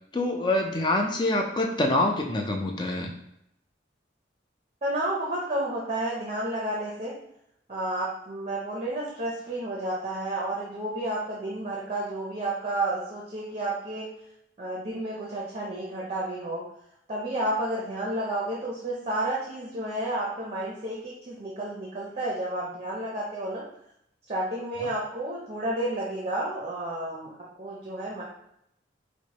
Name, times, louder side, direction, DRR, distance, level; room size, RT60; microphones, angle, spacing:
voice 1, 0.1-3.1 24.8-24.9, left 1 dB, 25° left, 2 dB, 0.4 m, -26 dB
voice 2, 4.8-7.1 7.7-14.1 14.6-16.6 17.1-23.6 24.3-27.3 27.6-28.2, right 1 dB, 35° right, -3 dB, 0.6 m, -31 dB
4.4 x 2.1 x 2.9 m, 0.77 s
head